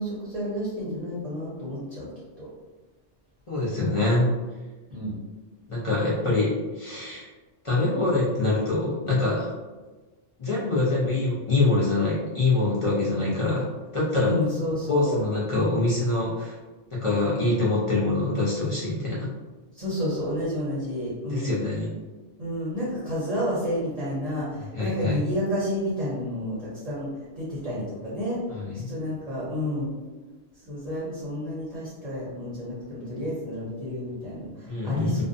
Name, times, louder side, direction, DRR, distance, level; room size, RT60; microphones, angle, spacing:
voice 1, 0.0-2.1 2.4-2.5 4.9-5.1 14.2-15.2 19.7-21.6 22.4-27.1 27.4-28.4 28.7-29.9 30.6-35.2, equal, 40° right, -8 dB, 0.6 m, -30 dB
voice 2, 3.5-4.3 5.7-7.3 7.6-9.5 10.4-13.7 13.9-14.4 14.9-16.6 16.9-19.3 21.3-21.9 24.7-25.2 28.5-28.8 34.7-35.2, left 2 dB, 45° left, -7 dB, 0.4 m, -24 dB
2.5 x 2.1 x 2.5 m, 1.2 s
omnidirectional pair, 1.2 m